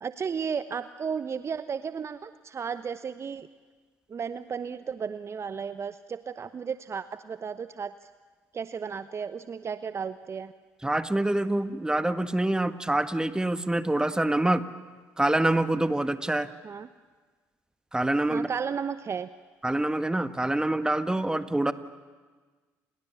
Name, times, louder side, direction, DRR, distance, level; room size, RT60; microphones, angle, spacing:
voice 1, 0.0-3.5 4.1-8.1 8.5-10.5 16.6-16.9 18.3-19.3, right 6 dB, 35° right, 13 dB, 0.9 m, -34 dB
voice 2, 10.8-14.6 15.2-16.5 17.9-18.5 19.6-21.7, right 1 dB, 10° right, 10 dB, 1.7 m, -26 dB
30.0 x 28.0 x 7.0 m, 1.4 s
hypercardioid pair, 55°, 8 cm